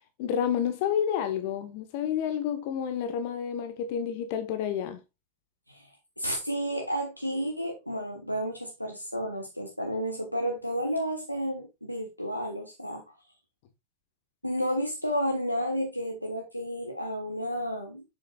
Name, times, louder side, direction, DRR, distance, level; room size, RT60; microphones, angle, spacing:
voice 1, 0.2-5.0, left 8 dB, 50° left, 1.2 m, -29 dB
voice 2, 6.2-13.0 14.4-18.0, equal, 90° left, 1.2 m, -31 dB
7.7 x 7.1 x 2.4 m
figure-of-eight pair, 90°, 0 cm